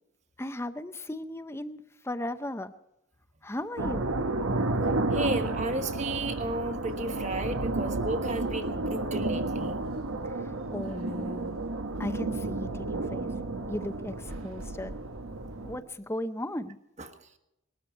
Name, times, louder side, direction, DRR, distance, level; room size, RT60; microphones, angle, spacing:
voice 1, 0.4-2.7 3.4-4.1 10.2-11.6 12.0-13.4 13.7-15.0 15.6-16.8, left 1 dB, 10° left, 11 dB, 0.6 m, -36 dB
sound 1, 3.8-15.8, right 2 dB, 80° right, 1.2 m, -31 dB
voice 2, 5.1-9.7, right 1 dB, 35° right, 7 dB, 1.4 m, -33 dB
20.0 x 13.0 x 4.5 m, 0.88 s
head